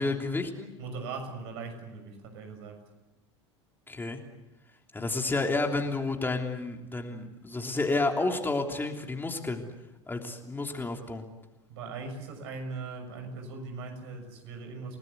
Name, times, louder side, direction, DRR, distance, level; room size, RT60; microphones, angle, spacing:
voice 1, 0.0-0.7 3.9-4.2 4.9-9.6 10.1-11.2, left 3 dB, 15° left, 3 dB, 3.2 m, -30 dB
voice 2, 0.8-2.8 11.7-15.0, right 4 dB, 65° right, 5 dB, 6.6 m, -40 dB
30.0 x 19.0 x 8.2 m, 1.0 s
figure-of-eight pair, 80°, 15 cm